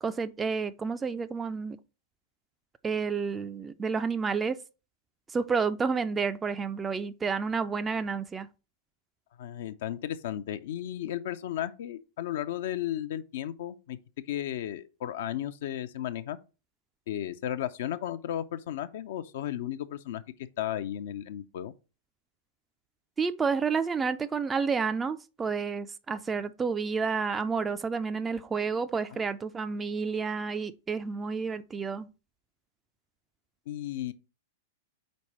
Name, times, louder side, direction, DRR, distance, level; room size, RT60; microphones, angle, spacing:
voice 1, 0.0-1.8 2.8-4.6 5.3-8.5 23.2-32.1, right 5 dB, 15° right, 0.3 m, -30 dB
voice 2, 9.4-14.0 14.3-16.4 17.1-20.2 20.6-21.7 29.1-29.2 33.7-34.1, left 11 dB, 55° left, 0.4 m, -34 dB
5.2 x 4.4 x 4.2 m
figure-of-eight pair, 95°, 0 cm